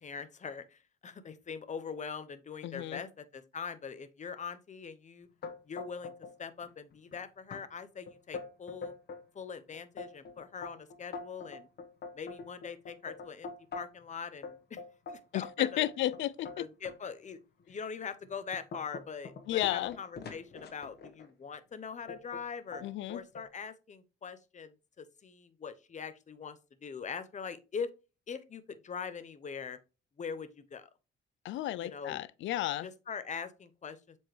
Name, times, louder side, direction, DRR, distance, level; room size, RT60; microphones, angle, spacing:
voice 1, 0.0-5.3 5.7-6.1 6.4-8.9 9.3-11.7 12.1-14.8 15.1-15.9 16.6-17.4 17.7-22.8 23.1-27.9 28.3-29.8 30.2-30.9 31.8-32.2 32.8-34.2, left 6 dB, 35° left, 0.8 m, -42 dB
voice 2, 2.6-3.0 15.3-16.6 19.5-20.0 22.8-23.2 31.4-32.9, left 14 dB, 75° left, 0.4 m, -33 dB
sound 1, 5.4-6.3 6.6-7.1 7.5-7.6 8.1-9.2 9.7-14.0 14.4-17.0 17.6-17.7 18.2-21.3 22.1-22.4 22.7-23.5, left 4 dB, 55° left, 1.4 m, -44 dB
7.5 x 4.5 x 3.2 m
cardioid pair, 90°, 20 cm